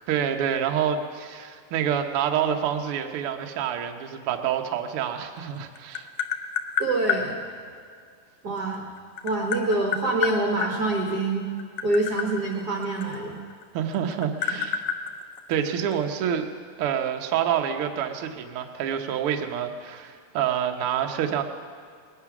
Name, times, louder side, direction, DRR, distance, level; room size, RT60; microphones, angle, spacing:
voice 1, 0.1-6.1 13.7-14.8 15.5-16.5 16.8-21.4, right 9 dB, 90° right, 4 dB, 1.2 m, -27 dB
Tap, 5.4-7.2 8.6-10.7 11.5-13.6 13.9-15.9, left 7 dB, 85° left, 1.3 m, -29 dB
voice 2, 6.8-7.4 8.4-8.8 9.2-11.5 11.8-13.4 14.5-14.6, right 2 dB, 65° right, -1 dB, 0.9 m, -26 dB
20.0 x 9.6 x 6.0 m, 2.2 s
omnidirectional pair, 3.9 m